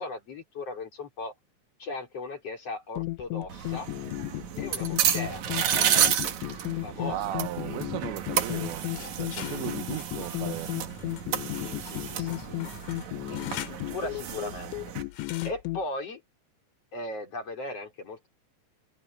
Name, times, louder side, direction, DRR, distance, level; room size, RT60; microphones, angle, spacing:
voice 1, 0.0-1.3 1.8-3.9 4.6-5.4 6.8-7.2 11.5-12.8 13.2-14.7 15.4-16.2 16.9-18.3, left 2 dB, 35° left, 4.9 m, -38 dB
sound 1, 3.0-15.8, left 21 dB, 85° left, 3.0 m, -35 dB
sound 2, 3.5-15.0, right 9 dB, 60° right, 2.1 m, -31 dB
voice 2, 7.0-8.9 9.1-10.9, right 14 dB, 80° right, 3.0 m, -36 dB
sound 3, 8.3-13.8 15.1-15.5, left 11 dB, 65° left, 3.4 m, -44 dB
omnidirectional pair, 5.3 m